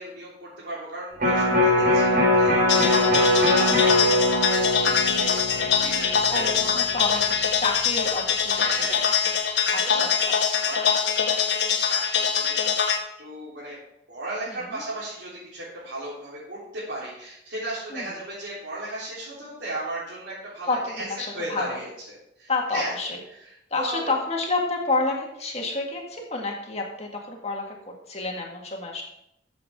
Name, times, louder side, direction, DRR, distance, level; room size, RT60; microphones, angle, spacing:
voice 1, 0.0-6.5 6.9-7.1 7.4-7.5 8.5-10.1 10.5-12.8 13.2-13.8 14.1-22.9 23.3-24.2, right 1 dB, 80° right, -9 dB, 3.7 m, -36 dB
Electric guitar, 1.2-7.4 7.8-7.9, left 1 dB, 50° right, 3.9 m, -22 dB
sound 1, 2.7-13.0, left 7 dB, 70° left, 1.2 m, -23 dB
voice 2, 6.3-9.0 9.7-10.4 14.7-14.8 17.9-18.1 20.7-21.8 22.5-23.2 23.7-27.6 28.1-29.0, left 3 dB, 35° left, 0 dB, 1.8 m, -29 dB
14.0 x 7.1 x 3.7 m, 0.80 s
head